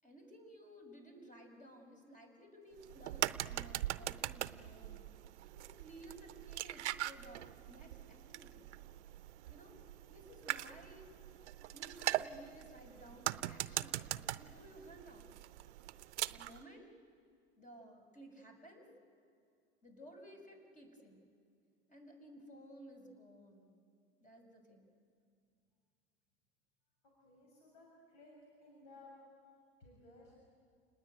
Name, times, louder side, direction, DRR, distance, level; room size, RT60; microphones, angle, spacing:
voice 1, 0.0-5.0 5.5-8.7 9.5-9.7 10.1-11.1 11.7-15.3 16.3-16.9 17.6-18.9 19.8-21.2 21.9-23.7 24.2-24.9, right 1 dB, 20° left, 4 dB, 6.2 m, -56 dB
sound 1, 2.8-16.6, right 14 dB, 75° right, 0.7 m, -42 dB
voice 2, 27.2-28.3 28.6-29.1 29.8-30.3, left 2 dB, 65° left, -2 dB, 6.7 m, -58 dB
29.0 x 20.0 x 9.3 m, 2.3 s
hypercardioid pair, 75°, 35 cm